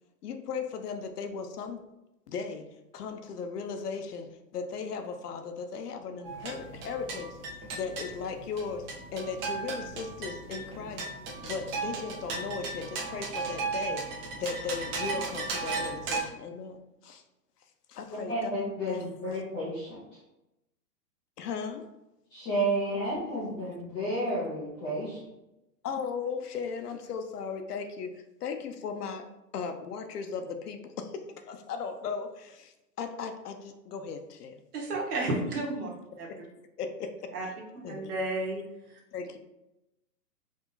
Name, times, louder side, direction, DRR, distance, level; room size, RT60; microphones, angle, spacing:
voice 1, 0.2-1.8 2.3-7.4 7.7-11.1 11.4-17.2 17.9-18.5 18.9-19.0 21.4-21.9 25.8-34.6 36.3-36.4 36.8-37.5 37.8-38.1 39.1-39.4, left 5 dB, 65° left, 6 dB, 0.8 m, -37 dB
sound 1, 6.2-16.2, right 4 dB, 35° right, 1.0 m, -36 dB
voice 2, 18.1-20.0 22.3-25.3, right 1 dB, 10° left, -9 dB, 0.4 m, -31 dB
voice 3, 34.7-35.9 36.2-36.3 37.3-37.5 37.9-38.6 38.9-39.0, right 2 dB, 60° right, -1 dB, 1.7 m, -31 dB
4.9 x 2.8 x 3.9 m, 0.94 s
hypercardioid pair, 130°, 49 cm